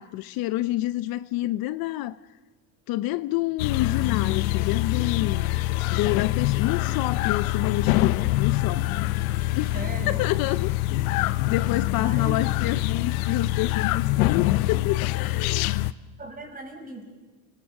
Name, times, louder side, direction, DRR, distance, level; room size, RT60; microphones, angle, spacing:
voice 1, 0.0-2.2 2.9-5.5 5.9-9.0 9.6-9.7 10.1-10.7 11.5-15.7, left 16 dB, 55° left, 0.7 m, -28 dB
sound 1, 3.6-15.9, left 16 dB, 90° left, 0.8 m, -25 dB
voice 2, 9.7-10.2 12.0-12.4 12.7-12.8 16.2-17.2, right 2 dB, 20° right, 6.5 m, -38 dB
29.0 x 22.0 x 6.5 m
supercardioid pair, 115°, 41 cm